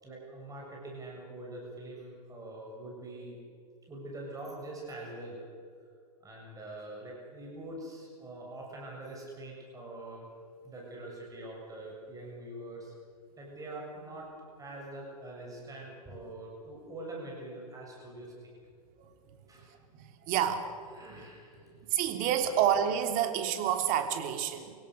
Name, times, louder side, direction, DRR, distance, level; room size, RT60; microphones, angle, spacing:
voice 1, 0.0-3.4 3.9-5.4 6.2-10.3 10.6-12.9 13.4-14.3 14.6-18.6 19.5-19.7 20.9-21.7, right 1 dB, 15° right, -2 dB, 7.4 m, -44 dB
voice 2, 19.9-20.7 21.8-24.7, right 9 dB, 45° right, 6 dB, 3.1 m, -29 dB
28.0 x 17.0 x 6.6 m, 2.2 s
hypercardioid pair, 100°, 20 cm